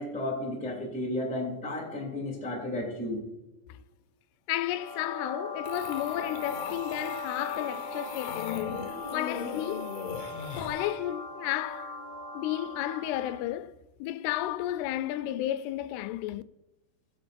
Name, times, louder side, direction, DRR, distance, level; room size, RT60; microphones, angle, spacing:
voice 1, 0.0-3.2, left 1 dB, 5° left, 1.8 m, -33 dB
voice 2, 4.5-10.0 10.6-12.0 12.3-13.8 14.0-16.4, left 13 dB, 90° left, 2.6 m, -33 dB
sound 1, 4.7-13.5, left 3 dB, 25° left, 1.2 m, -39 dB
sound 2, 5.7-10.9, left 7 dB, 70° left, 2.6 m, -39 dB
19.5 x 7.6 x 2.5 m
omnidirectional pair, 4.5 m